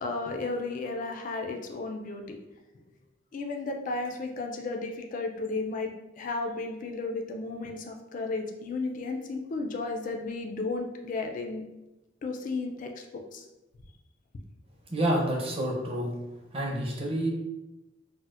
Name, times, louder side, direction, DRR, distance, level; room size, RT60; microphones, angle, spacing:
voice 1, 0.0-2.4 3.3-11.6 12.2-12.9 13.3-13.4, left 3 dB, 40° left, 3 dB, 0.3 m, -33 dB
voice 2, 14.9-16.1 16.5-17.3, right 1 dB, 30° right, -1 dB, 0.6 m, -28 dB
4.1 x 2.0 x 2.4 m, 0.98 s
head